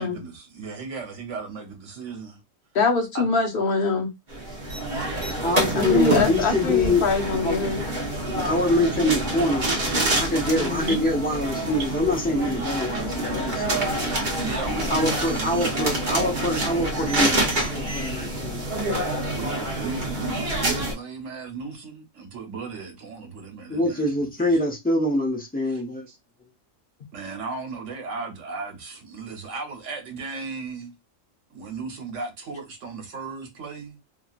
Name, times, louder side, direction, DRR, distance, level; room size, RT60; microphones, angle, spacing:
voice 1, 0.0-2.4 3.1-3.3 4.7-5.3 14.3-16.4 19.3-24.6 25.7-26.2 27.1-30.9 31.5-34.0, right 4 dB, 65° right, 1.2 m, -36 dB
voice 2, 2.7-4.1 5.7-7.9 10.6-11.0, left 4 dB, 50° left, 0.8 m, -24 dB
sound 1, 4.3-20.9, right 1 dB, 40° right, 1.0 m, -27 dB
voice 3, 5.4-7.0 7.3-7.6 8.4-9.7 10.2-14.2 14.9-18.7 23.7-26.1, left 1 dB, 10° left, 0.6 m, -25 dB
2.8 x 2.8 x 2.4 m
omnidirectional pair, 1.3 m